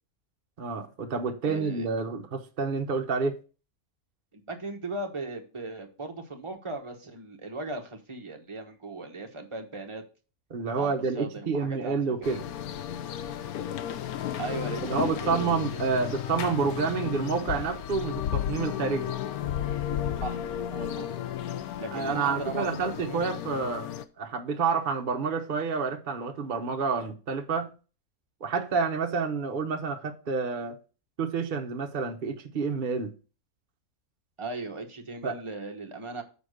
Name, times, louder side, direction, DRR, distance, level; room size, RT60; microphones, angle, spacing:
voice 1, 0.6-3.4 10.5-12.4 14.8-19.2 21.9-23.9 24.2-27.7 28.4-30.8 31.2-33.1 35.2-35.3, right 5 dB, 45° right, 0.9 m, -29 dB
voice 2, 1.4-1.9 4.3-10.0 10.8-12.3 14.4-16.0 20.2-20.4 20.7-21.1 21.8-23.2 34.4-36.2, right 3 dB, 25° right, 1.1 m, -38 dB
sound 1, 12.2-24.0, left 10 dB, 90° left, 1.2 m, -33 dB
7.0 x 4.5 x 6.4 m
omnidirectional pair, 1.5 m